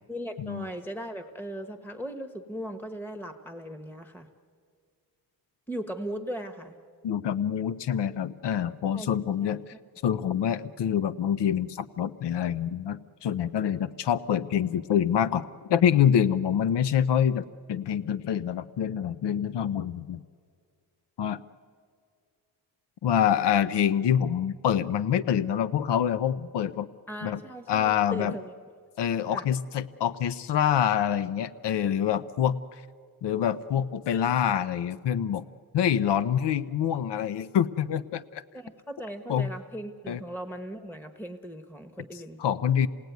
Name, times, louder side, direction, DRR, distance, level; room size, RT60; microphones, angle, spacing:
voice 1, 0.1-4.3 5.7-6.8 8.9-9.1 9.4-9.6 27.1-28.6 29.3-29.5 38.5-42.4, equal, 5° left, 8 dB, 1.2 m, -38 dB
voice 2, 7.0-9.6 10.0-20.2 21.2-21.4 23.0-26.9 27.2-27.4 27.7-28.3 29.0-32.8 33.2-35.4 35.7-38.4 39.3-39.5 40.1-40.2 42.4-42.9, left 9 dB, 85° left, 15 dB, 0.7 m, -26 dB
28.0 x 18.5 x 9.3 m, 2.2 s
wide cardioid pair, 110°, 40 cm